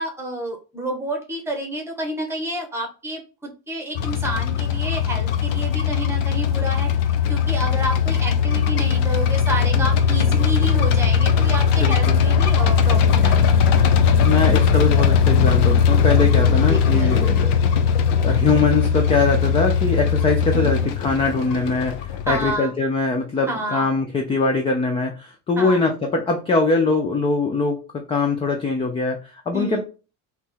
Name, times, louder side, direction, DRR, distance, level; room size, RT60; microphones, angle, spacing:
voice 1, 0.0-6.9 7.3-13.5 16.2-17.3 20.5-21.0 22.3-22.7 23.5-23.9 25.6-25.9 29.5-29.8, right 1 dB, 5° right, 2 dB, 1.0 m, -29 dB
sound 1, 3.9-22.5, left 6 dB, 75° left, 0.7 m, -19 dB
voice 2, 11.8-12.2 14.2-17.5 18.2-29.8, left 3 dB, 15° left, 4 dB, 0.4 m, -22 dB
4.2 x 3.0 x 3.7 m, 0.33 s
cardioid pair, 175°, 35 cm